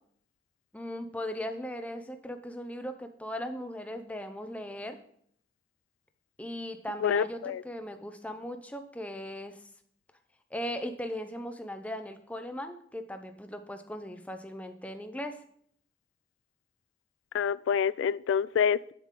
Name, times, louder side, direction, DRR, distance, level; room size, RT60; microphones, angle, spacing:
voice 1, 0.7-5.0 6.4-9.6 10.5-15.4, equal, 5° left, 0.6 m, -38 dB
voice 2, 7.0-7.6 17.3-18.9, left 7 dB, 90° left, 0.3 m, -27 dB
9.1 x 7.2 x 3.7 m
head